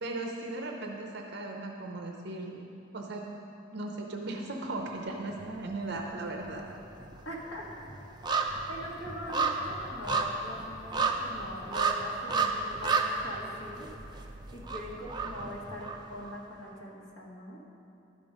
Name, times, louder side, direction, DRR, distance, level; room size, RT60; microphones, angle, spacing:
voice 1, 0.0-2.6 2.9-3.3 3.7-6.7, right 2 dB, 55° right, 1 dB, 0.7 m, -37 dB
sound 1, 5.3-6.1 6.3-16.3 16.7-16.8, right 4 dB, 20° right, 0.5 m, -32 dB
voice 2, 7.2-7.7 8.7-17.6, equal, 75° left, -3 dB, 1.6 m, -42 dB
12.0 x 5.3 x 5.2 m, 2.7 s
head